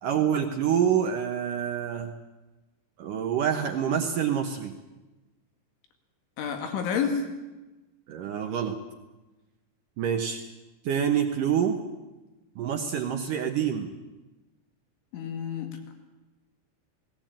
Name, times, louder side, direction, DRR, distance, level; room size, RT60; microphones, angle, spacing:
voice 1, 0.0-2.1 3.0-4.8 8.1-8.8 10.0-10.4 10.8-11.8 12.6-13.9, right 8 dB, 70° right, 5 dB, 2.1 m, -27 dB
voice 2, 6.4-7.3 15.1-15.8, left 6 dB, 90° left, 5 dB, 4.7 m, -29 dB
18.5 x 17.5 x 9.0 m, 1.1 s
omnidirectional pair, 5.3 m